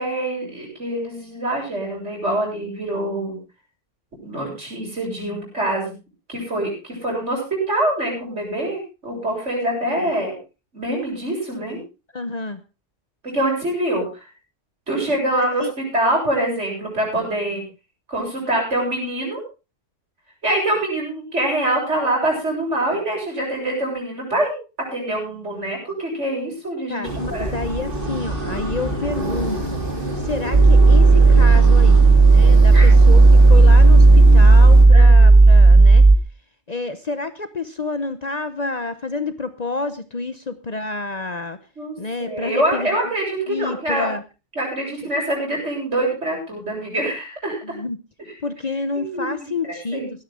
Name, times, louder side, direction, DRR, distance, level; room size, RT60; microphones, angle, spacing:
voice 1, 0.0-3.4 4.2-5.9 6.3-10.3 10.7-11.8 13.2-14.3 14.9-17.6 18.1-19.4 20.4-24.6 24.9-27.5 32.7-32.9 34.9-35.3 41.8-44.1 44.6-47.8 49.0-50.1, right 1 dB, 70° right, -1 dB, 7.8 m, -25 dB
voice 2, 12.1-12.6 15.4-15.7 26.9-29.8 30.2-36.0 36.7-41.6 42.0-42.9 43.5-44.2 47.6-48.0 48.4-50.2, left 3 dB, 40° left, 10 dB, 0.9 m, -29 dB
sound 1, 27.0-34.9, right 1 dB, 45° right, 3.6 m, -26 dB
sound 2, 30.5-36.2, right 3 dB, 30° right, 0.6 m, -10 dB
17.0 x 13.0 x 3.6 m, 0.31 s
omnidirectional pair, 1.2 m